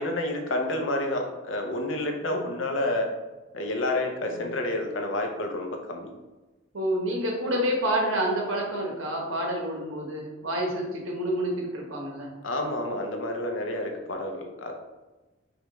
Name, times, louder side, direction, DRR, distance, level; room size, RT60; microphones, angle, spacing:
voice 1, 0.0-3.1 3.5-6.1 12.4-14.7, left 1 dB, 75° left, 3 dB, 0.6 m, -29 dB
voice 2, 6.7-12.3, right 1 dB, 85° right, -1 dB, 1.1 m, -28 dB
5.0 x 2.3 x 3.1 m, 1.2 s
head